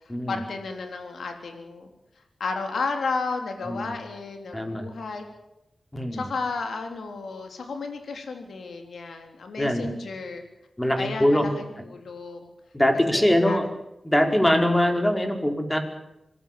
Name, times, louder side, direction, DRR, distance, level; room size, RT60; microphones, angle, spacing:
voice 1, 0.3-1.9 2.2-5.3 6.1-10.4 11.0-12.5 13.1-13.7, left 4 dB, 90° left, 5 dB, 3.6 m, -33 dB
voice 2, 4.5-4.8 5.9-6.2 9.6-9.9 10.8-11.5 12.7-13.7 14.0-15.8, left 1 dB, 10° left, 5 dB, 5.0 m, -22 dB
26.0 x 20.0 x 7.6 m, 0.90 s
wide cardioid pair, 80°, 0 cm